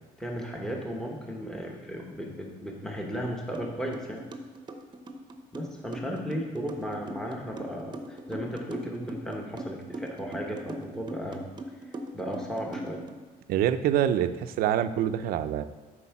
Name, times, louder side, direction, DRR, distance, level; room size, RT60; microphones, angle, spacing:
voice 1, 0.2-4.2 5.5-11.5 11.8-13.0, equal, 5° left, -1 dB, 1.1 m, -35 dB
sound 1, 3.5-3.7 3.9-13.1, right 1 dB, 30° right, 0.8 m, -39 dB
voice 2, 13.5-15.6, right 10 dB, 75° right, 11 dB, 0.5 m, -25 dB
8.4 x 4.5 x 5.8 m, 1.4 s
cardioid pair, 120°, 15 cm